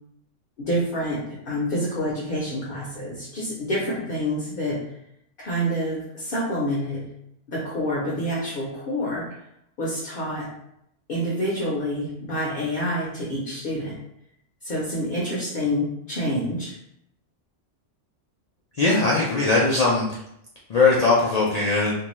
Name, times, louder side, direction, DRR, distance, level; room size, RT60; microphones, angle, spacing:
voice 1, 0.6-4.9 5.4-7.1 7.5-9.4 9.8-10.5 11.1-14.0 14.6-16.8, equal, 55° left, -4 dB, 0.7 m, -27 dB
voice 2, 18.8-20.1 20.7-21.9, left 3 dB, 70° left, -5 dB, 0.3 m, -20 dB
2.6 x 2.2 x 3.0 m, 0.76 s
omnidirectional pair, 1.3 m